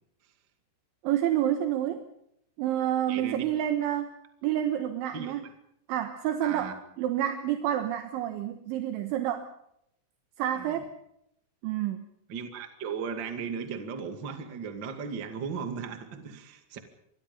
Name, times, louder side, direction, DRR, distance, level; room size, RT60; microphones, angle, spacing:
voice 1, 1.0-2.1 2.6-4.2 4.4-5.4 5.9-9.5 10.4-10.9 11.6-12.1, right 11 dB, 75° right, 7 dB, 3.5 m, -29 dB
voice 2, 3.1-3.5 5.1-5.3 6.4-6.7 10.6-10.8 12.3-16.8, right 6 dB, 40° right, 6 dB, 1.6 m, -36 dB
27.5 x 22.0 x 5.5 m, 0.76 s
omnidirectional pair, 5.7 m